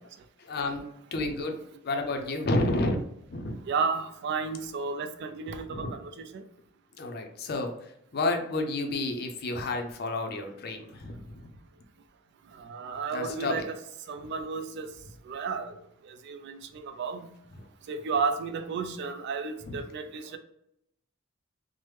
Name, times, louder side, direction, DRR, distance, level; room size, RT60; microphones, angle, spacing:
voice 1, 0.4-3.0 3.3-3.6 5.7-5.9 7.0-11.5 13.1-13.6 17.6-17.7 19.6-19.8, left 2 dB, 50° left, 4 dB, 0.5 m, -31 dB
voice 2, 3.7-6.4 12.5-13.8 14.1-14.9 15.3-17.3 17.9-20.4, right 5 dB, 55° right, 8 dB, 0.3 m, -33 dB
3.1 x 2.1 x 3.1 m, 0.77 s
head